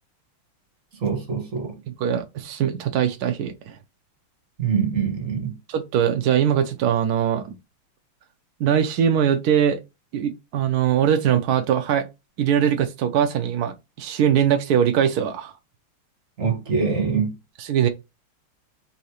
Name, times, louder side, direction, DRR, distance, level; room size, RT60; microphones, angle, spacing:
voice 1, 1.0-1.7 4.6-5.5 16.4-17.3, right 6 dB, 40° right, 1.5 m, -24 dB
voice 2, 1.9-3.8 5.7-7.5 8.6-9.8 10.1-12.1 12.4-15.5 17.6-17.9, right 9 dB, 85° right, 0.8 m, -21 dB
3.6 x 2.8 x 4.7 m
omnidirectional pair, 2.3 m